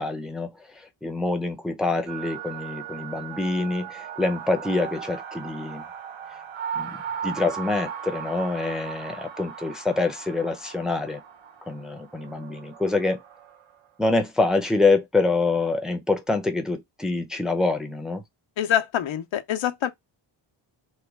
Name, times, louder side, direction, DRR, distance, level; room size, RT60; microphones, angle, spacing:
voice 1, 0.0-5.8 6.8-11.2 11.7-13.2 14.0-18.2, left 3 dB, ahead, 0.5 m, -26 dB
sound 1, 2.1-13.7, right 8 dB, 90° right, 1.0 m, -37 dB
voice 2, 18.6-19.9, left 10 dB, 85° left, 0.7 m, -25 dB
3.1 x 2.2 x 3.4 m
wide cardioid pair, 145°, 45 cm